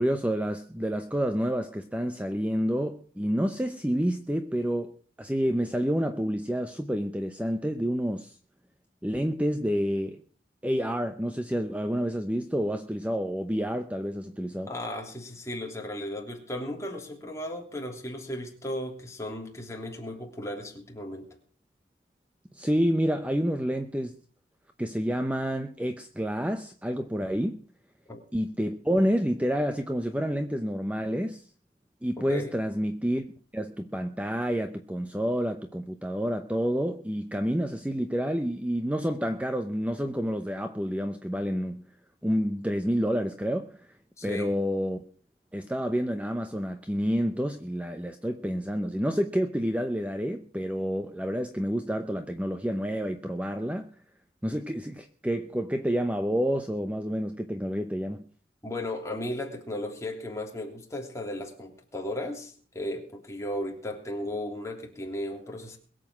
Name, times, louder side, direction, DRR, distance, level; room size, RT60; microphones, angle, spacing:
voice 1, 0.0-8.4 9.0-10.2 10.6-14.7 22.5-24.1 24.8-27.6 28.3-31.4 32.0-33.2 33.5-41.8 42.2-43.9 44.2-45.0 45.5-53.9 54.4-58.2, equal, 10° right, 0.8 m, -29 dB
voice 2, 14.7-21.3 28.1-28.2 32.2-32.5 44.2-44.5 58.6-65.8, left 1 dB, 15° left, 3.0 m, -35 dB
22.0 x 7.7 x 6.1 m
head